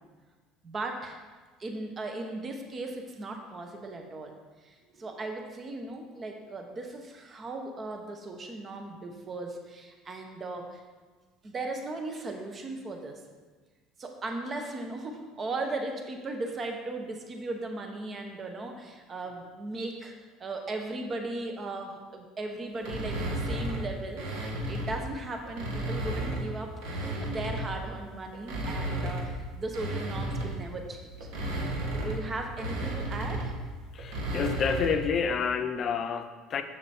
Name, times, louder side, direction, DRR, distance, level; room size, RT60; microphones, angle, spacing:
voice 1, 0.6-1.2 1.6-4.3 4.6-10.8 11.4-13.2 14.0-20.1 20.4-26.7 27.2-31.3 31.9-33.5, right 2 dB, 35° right, 4 dB, 1.1 m, -37 dB
sound 1, 22.8-25.0 25.5-27.9 28.3-35.1, right 1 dB, 75° right, 1.5 m, -33 dB
voice 2, 33.9-36.6, left 6 dB, 45° left, 9 dB, 0.6 m, -29 dB
6.7 x 6.7 x 4.3 m, 1.4 s
supercardioid pair, 85°, 0 cm